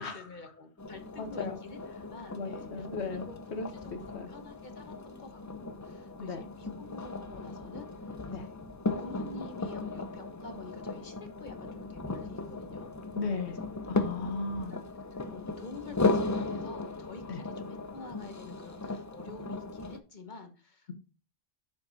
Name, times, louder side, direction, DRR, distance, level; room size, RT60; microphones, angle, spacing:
voice 1, 0.0-3.3 3.8-7.9 8.3-8.6 9.0-13.0 13.5-13.7 14.7-14.8 15.1-20.9, left 3 dB, 40° left, 1.2 m, -48 dB
sound 1, 0.8-20.0, left 3 dB, 25° left, 0.4 m, -36 dB
voice 2, 1.2-1.6 2.4-4.3 6.2-6.4 8.3-8.5 13.2-13.6 13.9-14.8 17.3-17.4, left 4 dB, 65° left, 1.5 m, -36 dB
6.5 x 5.9 x 4.1 m
omnidirectional pair, 1.2 m